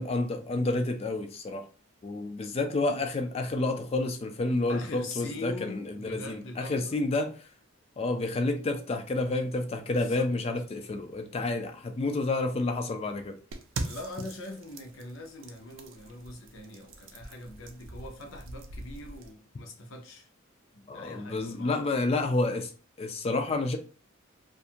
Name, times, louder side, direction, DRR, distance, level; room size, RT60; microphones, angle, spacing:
voice 1, 0.0-1.7 2.0-7.5 8.0-13.4 20.9-22.7 23.0-23.8, left 2 dB, 30° left, 0.3 m, -29 dB
voice 2, 4.7-6.9 10.0-10.3 13.8-20.3 20.7-21.8, left 2 dB, 65° left, 0.6 m, -42 dB
sound 1, 13.5-19.3, right 2 dB, 65° right, 0.4 m, -42 dB
2.5 x 2.4 x 2.7 m
head